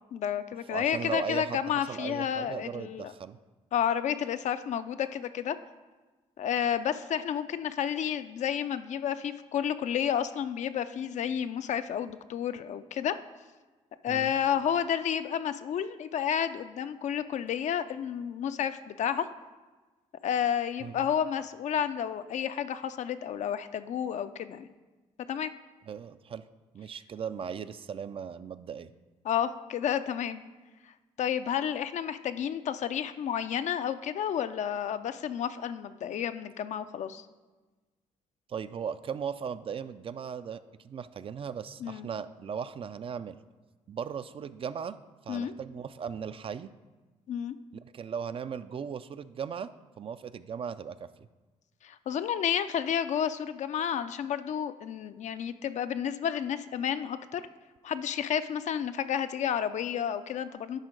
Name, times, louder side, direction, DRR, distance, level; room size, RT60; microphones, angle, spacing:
voice 1, 0.1-3.1 3.7-5.6 6.4-13.2 14.0-19.3 20.2-24.7 25.3-25.5 29.2-30.4 31.2-37.2 41.8-42.1 45.3-45.5 47.3-47.6 51.8-57.4 57.8-60.8, left 9 dB, 60° left, 11 dB, 0.4 m, -31 dB
voice 2, 0.7-3.4 14.1-14.3 20.8-21.0 25.9-26.4 26.7-28.9 38.5-43.4 43.9-45.0 45.3-46.7 47.8-49.7 50.0-51.1, right 7 dB, 45° right, 13 dB, 0.4 m, -37 dB
10.5 x 3.7 x 5.1 m, 1.2 s
cardioid pair, 75°, 13 cm